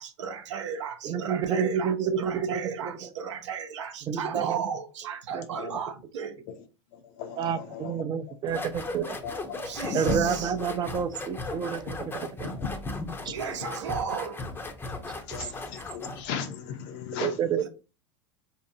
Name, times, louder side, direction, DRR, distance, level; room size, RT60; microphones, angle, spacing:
voice 1, 0.0-6.4 9.6-10.5 13.2-14.4 17.6-17.7, right 7 dB, 75° right, 0.7 m, -35 dB
voice 2, 1.0-2.9 4.1-4.6 5.3-5.4 7.4-9.2 9.9-12.6 13.2-13.3 17.2-17.7, right 7 dB, 30° right, 0.5 m, -29 dB
voice 3, 7.2-7.9 9.2-10.3 12.4-12.7 13.2-13.4 15.3-17.3, left 8 dB, 55° left, 0.7 m, -36 dB
sound 1, 8.5-16.3, left 2 dB, 15° left, 0.6 m, -36 dB
4.4 x 2.8 x 2.7 m
hypercardioid pair, 95°, 15 cm